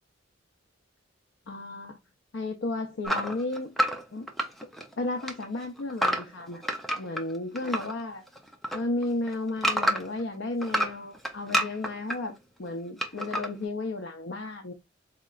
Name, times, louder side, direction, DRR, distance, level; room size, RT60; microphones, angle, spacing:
voice 1, 1.5-2.0 2.3-3.7 4.1-4.3 5.0-6.6 7.0-8.2 8.7-14.7, left 2 dB, 65° left, 0.6 m, -33 dB
sound 1, 3.0-4.9 5.2-7.9 8.3-10.2 10.6-12.2 13.0-13.5, equal, ahead, 0.5 m, -29 dB
4.2 x 2.9 x 2.3 m
head